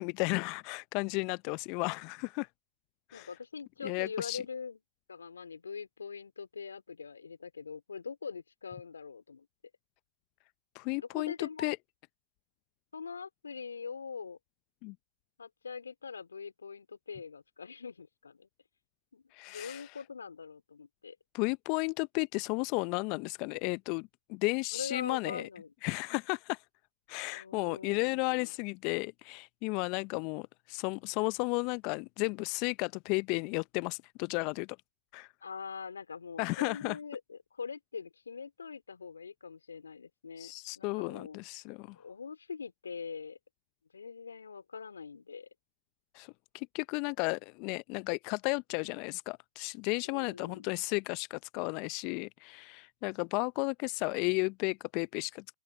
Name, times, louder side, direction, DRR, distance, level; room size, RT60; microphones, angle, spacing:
voice 1, 0.0-2.5 3.1-3.3 3.8-4.4 10.7-11.8 14.8-14.9 19.3-19.9 21.3-25.4 25.8-26.6 27.1-34.7 35.1-35.3 36.4-37.0 40.4-42.0 46.1-55.5, left 30 dB, 40° left, 0.5 m, -33 dB
voice 2, 3.1-4.8 5.1-9.5 11.0-11.7 12.9-14.4 15.4-18.5 19.1-19.2 19.5-21.2 24.7-25.7 27.3-28.5 35.4-41.4 42.0-43.4 43.9-45.5 50.0-50.7, left 5 dB, 80° left, 3.3 m, -43 dB
open air
figure-of-eight pair, 115°, 0 cm